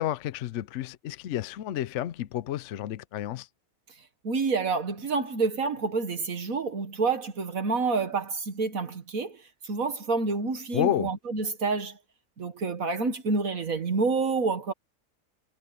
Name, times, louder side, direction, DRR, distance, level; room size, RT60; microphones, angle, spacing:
voice 1, 0.0-3.5 10.7-11.1, left 12 dB, 65° left, 0.8 m, -30 dB
voice 2, 4.2-12.0 12.4-14.7, right 4 dB, 65° right, 1.9 m, -28 dB
omnidirectional pair, 1.6 m